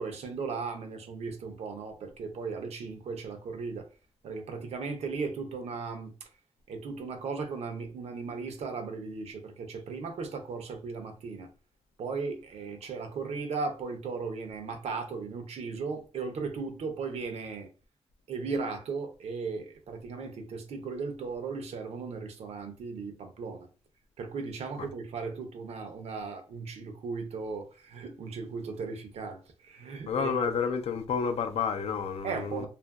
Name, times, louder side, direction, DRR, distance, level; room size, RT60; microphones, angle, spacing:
voice 1, 0.0-3.9 4.2-6.3 6.7-11.5 12.0-17.7 18.3-23.7 24.2-30.5 32.2-32.7, right 4 dB, 85° right, 0.6 m, -36 dB
voice 2, 30.1-32.7, left 6 dB, 75° left, 0.4 m, -30 dB
2.8 x 2.5 x 2.3 m
wide cardioid pair, 110°, 11 cm